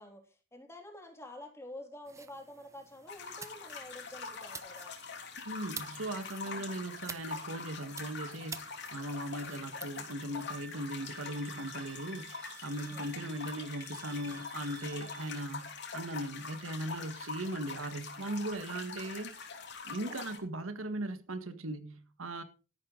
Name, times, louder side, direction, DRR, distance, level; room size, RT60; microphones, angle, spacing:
voice 1, 0.0-5.0 6.4-6.7 12.8-13.2 19.9-20.2, left 1 dB, 15° left, 3.3 m, -49 dB
sound 1, 2.1-9.9, right 5 dB, 15° right, 0.8 m, -50 dB
sound 2, 3.1-20.4, left 5 dB, 55° left, 3.1 m, -44 dB
voice 2, 5.4-19.4 19.8-22.4, right 1 dB, 85° right, 1.7 m, -39 dB
Wind instrument woodwind instrument, 10.5-15.3, right 7 dB, 65° right, 5.0 m, -54 dB
13.5 x 11.5 x 3.9 m
head